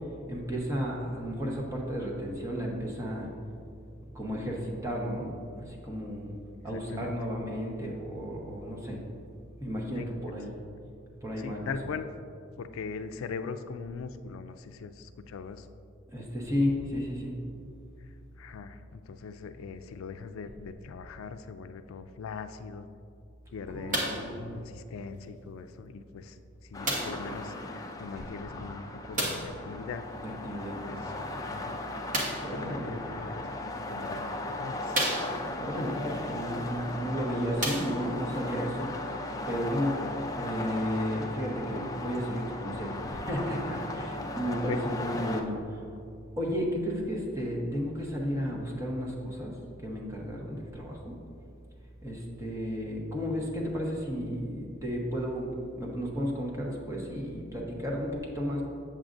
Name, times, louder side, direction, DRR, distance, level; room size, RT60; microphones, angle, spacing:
voice 1, 0.3-3.3 4.1-6.3 6.6-9.0 9.6-10.5 11.2-11.7 16.1-17.4 23.7-24.6 28.1-28.2 30.2-30.8 32.4-33.0 35.4-38.9 39.5-40.0 40.3-45.9 46.4-51.1 52.0-58.6, equal, 15° right, -2 dB, 1.0 m, -33 dB
voice 2, 6.7-7.1 10.0-10.1 11.4-12.1 12.6-15.7 18.4-22.9 23.5-24.0 24.5-26.4 26.7-30.0 30.8-31.2 31.5-31.9 32.3-33.5 33.9-35.0 44.7-44.8, left 5 dB, 85° left, 9 dB, 0.3 m, -41 dB
sound 1, 23.9-24.3 25.2-25.3 26.8-27.3 29.1-29.6 32.1-32.5 33.5-33.6 34.2-34.3 34.9-35.6 36.9-37.0 37.5-38.3 39.1-39.2, right 1 dB, 40° right, 1.2 m, -31 dB
sound 2, 26.7-45.4, left 2 dB, 15° left, 0.4 m, -37 dB
7.6 x 7.3 x 2.6 m, 2.4 s
head